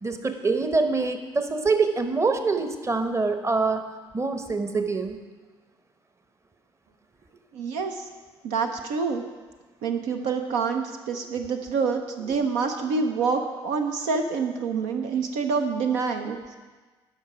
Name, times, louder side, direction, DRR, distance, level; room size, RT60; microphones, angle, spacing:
voice 1, 0.0-3.8 4.1-5.2, right 4 dB, 20° right, 7 dB, 1.0 m, -25 dB
voice 2, 7.5-8.1 8.4-9.2 9.8-16.6, right 5 dB, 65° right, 4 dB, 0.7 m, -27 dB
13.0 x 5.6 x 4.9 m, 1.3 s
figure-of-eight pair, 50°, 13 cm